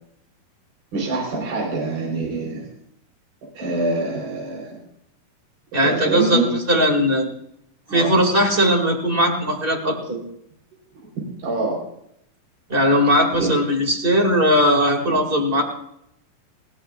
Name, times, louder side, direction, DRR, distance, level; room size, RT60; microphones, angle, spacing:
voice 1, 0.9-2.7 3.5-4.8 5.8-6.5 7.9-8.2 11.4-11.8 13.4-13.5, right 2 dB, 75° right, -3 dB, 5.9 m, -25 dB
voice 2, 5.7-6.4 6.7-7.3 7.9-10.2 12.7-15.6, equal, 20° right, 1 dB, 1.8 m, -19 dB
20.0 x 17.5 x 2.5 m, 0.74 s
omnidirectional pair, 4.3 m